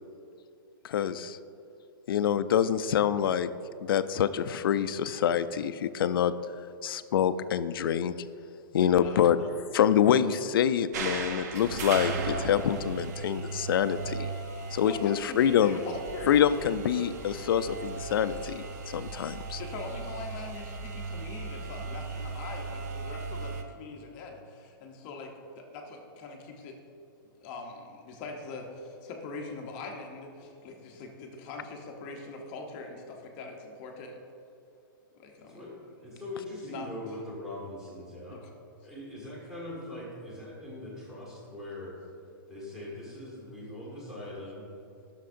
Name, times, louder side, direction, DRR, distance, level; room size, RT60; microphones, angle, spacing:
voice 1, 0.8-1.4 2.1-3.5 3.8-6.3 6.8-8.1 8.7-14.3 14.7-15.8 16.3-19.6, left 9 dB, 80° left, 13 dB, 0.4 m, -26 dB
voice 2, 8.8-9.5 14.8-16.4 19.6-24.3 24.8-25.3 25.7-26.4 26.6-26.7 27.4-28.6 29.0-30.3 30.6-34.1 35.2-35.6 36.6-36.9 38.3-38.4, left 3 dB, 25° left, 1 dB, 0.7 m, -42 dB
sound 1, 10.9-23.6, right 4 dB, 50° right, 0.7 m, -37 dB
voice 3, 35.4-35.8 36.0-38.5 38.8-41.9 42.5-44.7, left 1 dB, 5° right, -5 dB, 1.4 m, -41 dB
11.5 x 6.6 x 2.5 m, 2.7 s
hypercardioid pair, 170°, 12 cm